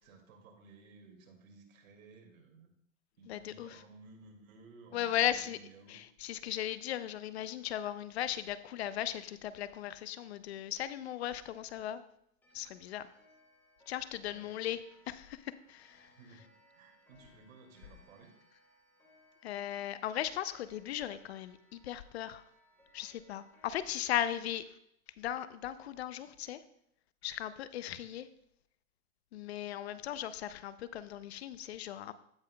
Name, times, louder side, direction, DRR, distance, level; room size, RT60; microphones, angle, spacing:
voice 1, 0.0-2.7 3.2-6.0 14.3-14.5 16.2-18.3 27.8-28.0, right 3 dB, 70° right, 2 dB, 2.3 m, -57 dB
voice 2, 3.3-3.8 4.9-5.6 5.9-12.0 12.5-13.1 13.9-16.1 19.4-22.4 22.9-24.8 25.2-26.6 27.2-28.3 29.3-32.1, left 11 dB, 50° left, 14 dB, 0.5 m, -37 dB
Clock, 12.4-24.5, equal, 5° left, 0.7 m, -66 dB
16.0 x 5.5 x 2.2 m, 0.72 s
hypercardioid pair, 155°, 42 cm